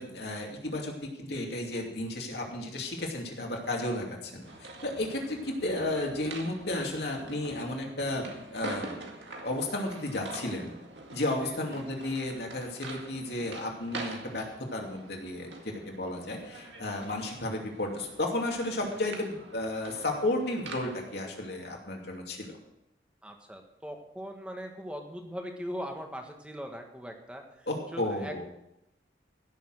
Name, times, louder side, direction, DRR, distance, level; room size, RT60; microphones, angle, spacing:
voice 1, 0.0-9.1 9.4-10.7 11.1-14.4 14.7-22.6 27.7-28.4, left 1 dB, 70° left, 0 dB, 2.6 m, -33 dB
sound 1, 4.4-21.2, right 2 dB, 85° right, 2.1 m, -45 dB
voice 2, 23.2-27.7 27.9-28.4, equal, 5° right, 3 dB, 1.5 m, -40 dB
15.5 x 7.1 x 6.6 m, 0.86 s
head